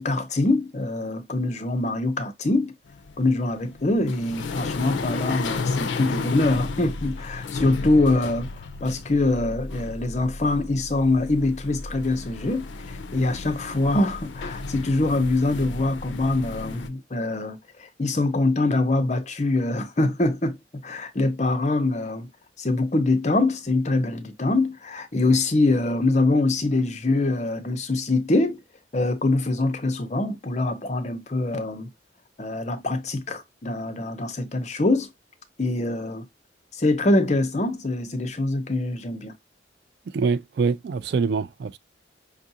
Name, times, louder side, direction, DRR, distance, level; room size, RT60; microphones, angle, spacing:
voice 1, 0.0-2.7 3.2-20.6 20.8-22.3 22.6-28.6 28.9-31.9 32.4-35.1 35.6-36.3 36.7-39.3, left 2 dB, 40° left, 0.6 m, -24 dB
sound 1, 2.9-16.9, left 3 dB, 80° left, 0.4 m, -33 dB
voice 2, 40.1-41.8, right 5 dB, 60° right, 0.3 m, -24 dB
5.4 x 2.4 x 2.7 m
head